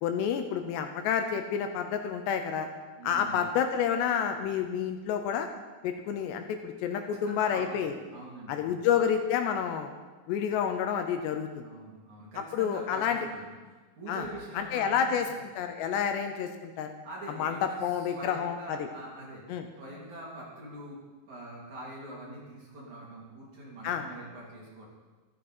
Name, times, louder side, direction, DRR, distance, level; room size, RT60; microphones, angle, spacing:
voice 1, 0.0-2.7 3.0-5.5 5.8-7.9 8.5-9.9 10.3-11.7 12.5-13.2 14.1-14.3 14.6-15.3 15.6-16.9 17.4-18.9 19.5-19.7 23.8-24.0, left 8 dB, 80° left, 6 dB, 2.8 m, -29 dB
voice 2, 3.0-3.4 6.9-8.9 11.6-13.6 14.0-15.4 17.0-19.4 19.8-21.0 21.2-24.9, right 1 dB, 45° right, -5 dB, 3.8 m, -44 dB
13.5 x 13.0 x 4.4 m, 1.3 s
omnidirectional pair, 5.2 m